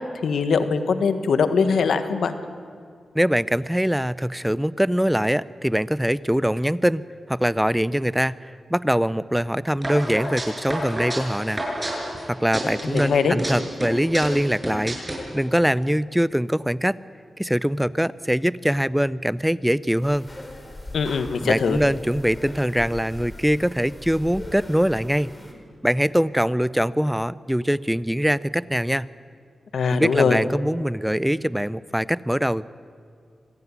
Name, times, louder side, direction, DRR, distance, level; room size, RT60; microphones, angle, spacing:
voice 1, 0.2-2.3 12.8-13.4 20.9-21.8 29.7-30.4, left 5 dB, 85° left, 10 dB, 1.4 m, -21 dB
voice 2, 3.1-11.6 12.3-17.0 17.4-20.3 21.4-25.3 25.8-29.1 29.9-32.7, equal, 5° right, 18 dB, 0.5 m, -23 dB
sound 1, 9.8-12.2 12.5-13.5 13.8-15.2, right 1 dB, 20° right, 8.0 m, -29 dB
sound 2, 20.0-25.5, left 1 dB, 25° left, 4.1 m, -40 dB
25.5 x 16.0 x 9.9 m, 2.2 s
cardioid pair, 60°, 0 cm